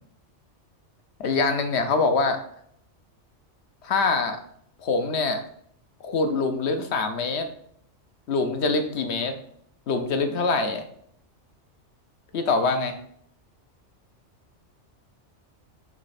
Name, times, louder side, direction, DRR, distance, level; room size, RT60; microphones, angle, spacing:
voice 1, 1.2-2.4 3.8-4.4 4.8-5.4 6.0-7.5 8.3-9.3 9.9-10.8 12.3-13.0, left 3 dB, 65° left, 7 dB, 1.1 m, -24 dB
8.9 x 3.2 x 4.2 m, 0.67 s
omnidirectional pair, 1.2 m